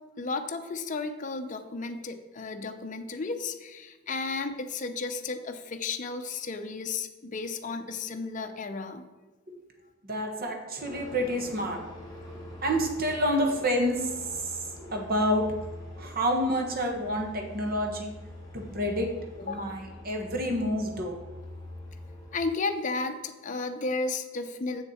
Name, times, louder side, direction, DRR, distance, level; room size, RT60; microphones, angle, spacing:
voice 1, 0.2-9.0 19.5-19.8 22.3-24.8, left 3 dB, 40° left, 6 dB, 0.6 m, -33 dB
voice 2, 10.0-11.8 12.3-14.2 14.4-15.4 16.0-18.1 18.5-19.1 19.4-21.2, equal, 45° right, 3 dB, 1.3 m, -29 dB
sound 1, 10.8-22.4, left 1 dB, 20° left, 2.8 m, -44 dB
7.2 x 6.6 x 4.3 m, 1.3 s
head